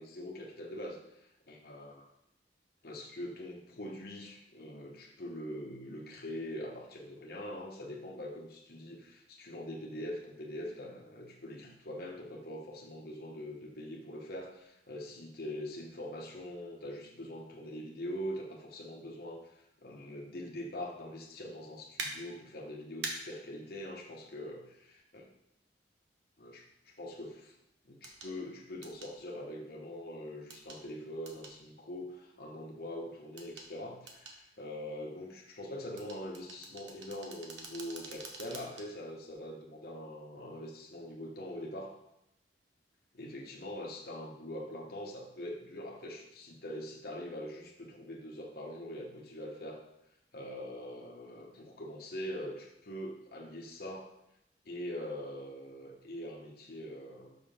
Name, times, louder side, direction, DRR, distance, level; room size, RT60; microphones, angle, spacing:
voice 1, 0.0-2.1 2.8-25.3 26.4-27.5 27.8-42.0 43.1-49.8 50.3-54.1 54.6-57.4, left 1 dB, 55° left, -1 dB, 1.0 m, -43 dB
sound 1, 22.0-22.1 23.0-23.1 25.1-25.2 28.0-28.3 28.8-29.1 30.5-30.8 31.3-31.6 33.4-33.7 34.1-34.4 36.0-38.9 39.3-39.4, right 4 dB, 85° right, 1.2 m, -43 dB
6.0 x 5.3 x 5.6 m, 0.84 s
head